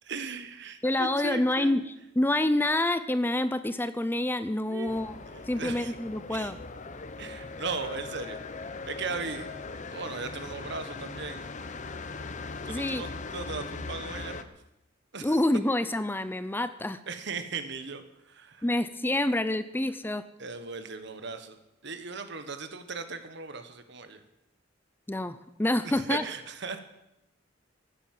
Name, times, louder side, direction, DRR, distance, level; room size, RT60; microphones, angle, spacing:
voice 1, 0.0-1.9 4.7-5.9 6.3-6.5 7.2-9.6 9.9-11.5 12.6-14.5 15.1-15.4 17.1-18.7 20.4-21.6 21.8-24.2 25.8-26.8, right 4 dB, 65° right, 9 dB, 1.5 m, -38 dB
voice 2, 0.8-1.8 2.2-5.1 5.5-6.6 12.7-13.0 15.2-17.0 18.6-20.2 25.1-26.2, left 1 dB, 10° left, 13 dB, 0.5 m, -27 dB
sound 1, 4.9-14.4, left 3 dB, 40° left, 0.9 m, -40 dB
15.5 x 9.7 x 7.7 m, 0.88 s
head